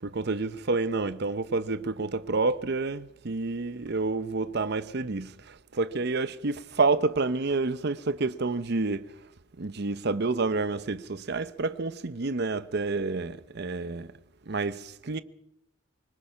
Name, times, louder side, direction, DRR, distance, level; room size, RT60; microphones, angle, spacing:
voice 1, 0.0-9.1 9.6-14.1 14.5-15.2, right 3 dB, 55° right, 0.8 m, -29 dB
25.0 x 20.0 x 5.8 m
head